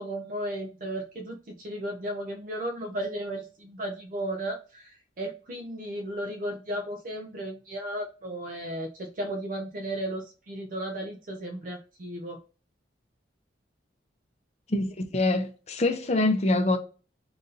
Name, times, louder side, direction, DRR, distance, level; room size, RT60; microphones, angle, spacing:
voice 1, 0.0-12.4, right 1 dB, 45° right, 0.5 m, -35 dB
voice 2, 14.7-16.8, left 2 dB, 35° left, 0.6 m, -25 dB
3.8 x 2.7 x 3.9 m
head